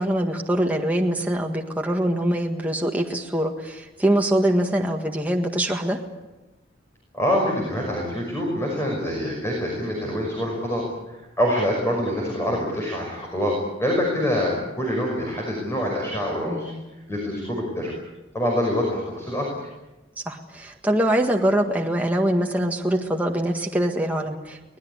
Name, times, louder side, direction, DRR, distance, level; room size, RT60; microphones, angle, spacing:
voice 1, 0.0-6.0 16.5-16.8 20.2-24.8, right 1 dB, 10° right, 1 dB, 1.7 m, -23 dB
voice 2, 7.1-16.7 17.1-17.9 18.3-19.5, equal, 15° left, -1 dB, 5.7 m, -25 dB
24.5 x 19.5 x 9.8 m, 1.0 s
head